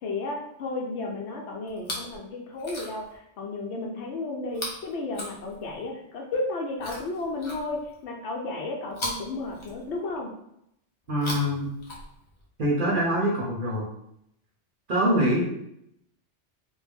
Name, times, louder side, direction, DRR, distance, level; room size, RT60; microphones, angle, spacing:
voice 1, 0.0-10.3, left 2 dB, 70° left, 0 dB, 0.8 m, -33 dB
Chewing mastication, 1.7-2.2 2.5-3.2 4.5-5.9 6.8-8.0 8.9-10.2 11.0-12.5 13.4-13.5, left 1 dB, 35° left, 0.5 m, -38 dB
voice 2, 11.1-11.7 12.6-13.8 14.9-15.4, equal, 50° right, -4 dB, 0.8 m, -24 dB
2.4 x 2.1 x 3.3 m, 0.76 s
omnidirectional pair, 1.2 m